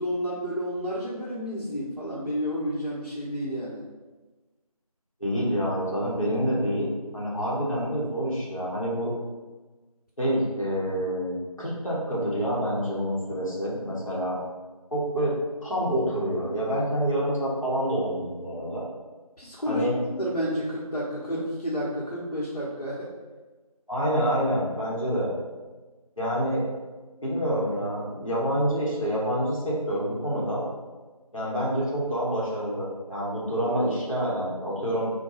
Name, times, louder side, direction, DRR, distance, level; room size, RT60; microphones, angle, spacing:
voice 1, 0.0-3.8 19.4-23.1, equal, 75° left, -7 dB, 0.9 m, -30 dB
voice 2, 5.2-9.1 10.2-14.4 14.9-15.3 15.6-18.8 19.7-19.9 23.9-25.3 26.2-26.6 27.2-30.6 31.3-35.1, equal, 60° left, -6 dB, 1.1 m, -27 dB
3.7 x 2.2 x 2.9 m, 1.3 s
figure-of-eight pair, 180°, 19 cm